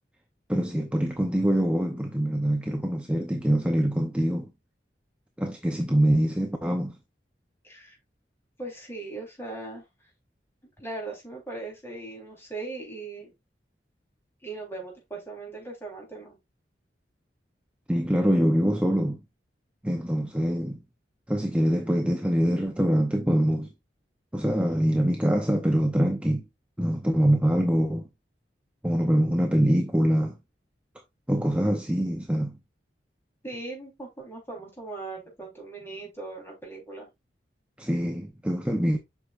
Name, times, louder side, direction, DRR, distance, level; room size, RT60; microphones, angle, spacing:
voice 1, 0.5-4.5 5.4-7.0 17.9-19.2 19.8-20.8 21.3-23.7 24.3-26.4 26.8-28.1 28.8-30.4 31.3-32.6 37.8-39.0, equal, 5° right, 0.7 m, -24 dB
voice 2, 7.6-8.0 8.6-9.8 10.8-13.3 14.4-16.4 33.4-37.1, right 3 dB, 15° left, 3.7 m, -39 dB
8.1 x 5.9 x 2.5 m
head